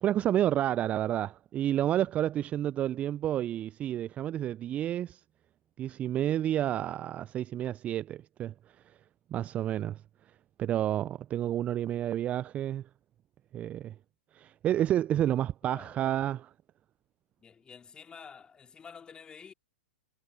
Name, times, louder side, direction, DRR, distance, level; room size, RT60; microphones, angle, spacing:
voice 1, 0.0-5.2 5.8-8.5 9.3-10.0 10.6-12.8 13.5-13.9 14.3-16.5, right 11 dB, 20° right, 0.5 m, -30 dB
voice 2, 15.6-16.1 17.4-19.5, left 6 dB, 15° left, 3.0 m, -50 dB
figure-of-eight pair, 115°, 6 cm